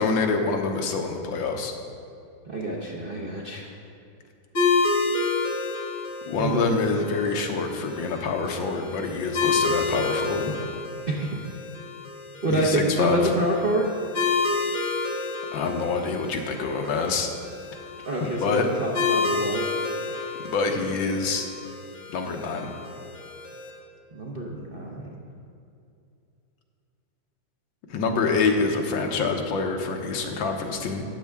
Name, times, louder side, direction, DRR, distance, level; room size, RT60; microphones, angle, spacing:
voice 1, 0.0-1.7 6.3-10.5 12.5-13.2 15.5-17.3 18.2-18.7 20.4-21.5 22.1-22.7 27.9-31.0, left 4 dB, 75° left, 4 dB, 1.7 m, -26 dB
voice 2, 2.5-3.7 6.4-6.6 11.1-11.3 12.4-13.9 14.9-15.2 18.1-19.7 20.1-20.3 24.1-25.0, right 1 dB, 45° right, -3 dB, 0.7 m, -27 dB
sound 1, 4.5-23.7, left 4 dB, 40° left, 1.9 m, -30 dB
13.0 x 8.7 x 3.5 m, 2.6 s
omnidirectional pair, 2.1 m